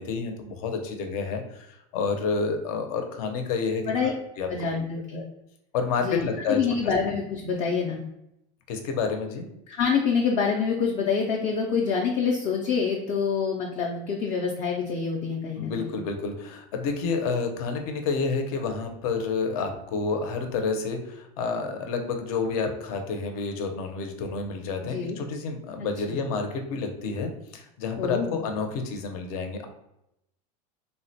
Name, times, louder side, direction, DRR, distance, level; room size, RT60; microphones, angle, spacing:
voice 1, 0.0-4.7 5.1-5.2 5.7-6.6 8.7-9.5 15.6-29.7, left 4 dB, 70° left, 5 dB, 0.6 m, -29 dB
voice 2, 4.5-5.2 6.0-8.0 9.7-16.0 24.8-25.2 26.1-26.2 28.0-28.4, left 5 dB, 35° left, 0 dB, 0.3 m, -26 dB
3.7 x 2.1 x 2.7 m, 0.83 s
supercardioid pair, 160°, 20 cm